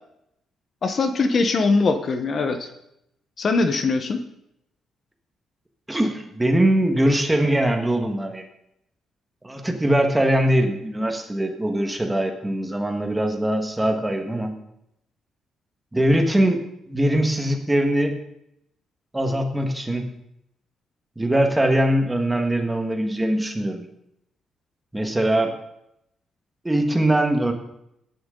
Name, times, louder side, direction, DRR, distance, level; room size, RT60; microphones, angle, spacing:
voice 1, 0.8-2.7 3.4-4.2, left 3 dB, 40° left, 8 dB, 1.0 m, -21 dB
voice 2, 5.9-8.4 9.4-14.5 15.9-18.2 19.1-20.1 21.2-23.9 24.9-25.5 26.6-27.5, right 1 dB, 10° right, 4 dB, 1.6 m, -22 dB
17.5 x 10.0 x 3.8 m, 0.80 s
cardioid pair, 140°, 0 cm